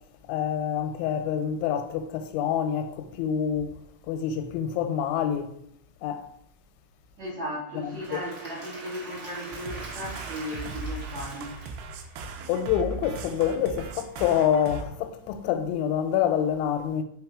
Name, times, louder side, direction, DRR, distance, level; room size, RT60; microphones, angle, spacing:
voice 1, 0.3-3.7 4.1-5.5 6.0-6.3 8.1-8.2 12.5-17.0, left 9 dB, 85° left, 2.9 m, -27 dB
voice 2, 7.2-11.5, equal, 65° right, 1.8 m, -36 dB
Applause / Crowd, 7.7-12.7, right 2 dB, 35° right, 1.4 m, -43 dB
sound 1, 9.5-14.9, right 4 dB, 85° right, 2.7 m, -38 dB
6.5 x 3.6 x 4.8 m
omnidirectional pair, 5.3 m